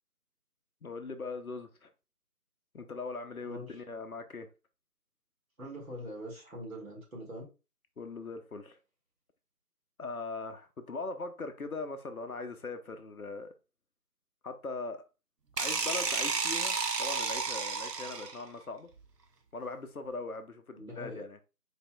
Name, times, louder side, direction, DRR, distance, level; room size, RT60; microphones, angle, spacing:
voice 1, 0.8-1.9 2.7-4.5 8.0-8.8 10.0-13.5 14.4-15.0 15.6-18.9 19.5-21.4, left 3 dB, 65° left, 0.6 m, -40 dB
voice 2, 3.4-3.8 5.6-7.5 20.8-21.2, equal, 60° right, 2.1 m, -43 dB
sound 1, 15.6-18.5, right 4 dB, 85° right, 0.8 m, -32 dB
4.1 x 3.3 x 2.2 m
figure-of-eight pair, 170°, 47 cm